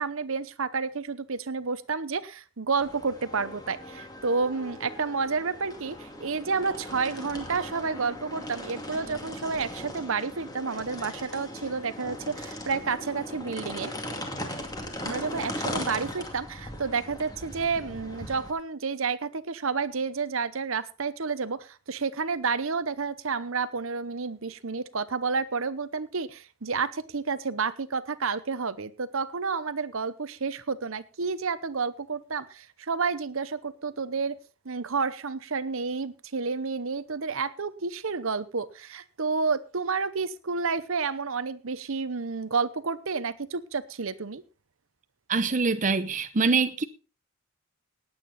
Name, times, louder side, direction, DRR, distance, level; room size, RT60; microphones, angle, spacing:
voice 1, 0.0-13.9 15.0-34.4 34.6-44.4, right 4 dB, 65° right, 0.9 m, -30 dB
sound 1, 2.8-18.5, left 1 dB, 15° left, 2.4 m, -39 dB
voice 2, 45.3-46.8, right 4 dB, 35° right, 0.7 m, -24 dB
18.5 x 8.9 x 4.1 m
head